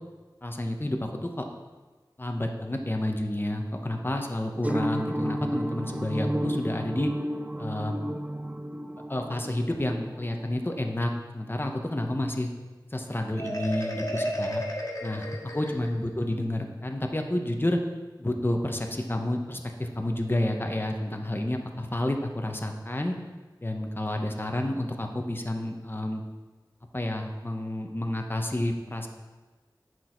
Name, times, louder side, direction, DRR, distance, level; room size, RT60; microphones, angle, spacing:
voice 1, 0.4-1.4 2.2-7.1 7.6-8.0 9.1-12.5 12.9-14.6 15.0-17.8 18.2-23.2 23.6-26.2 26.9-29.1, left 1 dB, 30° left, 3 dB, 1.0 m, -30 dB
sound 1, 4.6-10.8, equal, 20° right, 0.5 m, -32 dB
Marimba xylophone, 13.4-16.1, equal, 50° left, 1.9 m, -33 dB
10.0 x 6.2 x 4.5 m, 1.3 s
wide cardioid pair, 50°, 8 cm